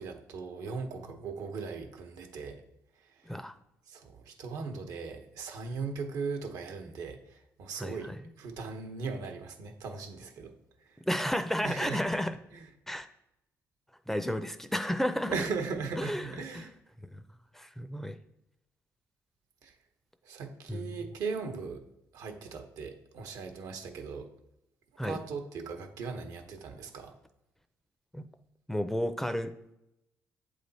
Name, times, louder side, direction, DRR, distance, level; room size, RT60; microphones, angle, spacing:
voice 1, 0.0-2.6 3.2-3.3 3.9-10.5 10.9-11.0 11.6-12.0 12.5-12.7 15.3-16.7 19.6-19.7 20.2-21.8 22.1-24.3 25.0-27.1, right 4 dB, 80° right, 5 dB, 0.9 m, -38 dB
voice 2, 7.8-8.2 11.1-12.4 12.9-13.1 14.1-15.3 16.0-16.6 17.1-17.2 17.5-18.2 20.7-20.9 25.0-25.2 28.1-28.2 28.7-29.7, equal, 5° left, 10 dB, 0.4 m, -32 dB
7.7 x 3.4 x 4.0 m, 0.85 s
cardioid pair, 80°, 6 cm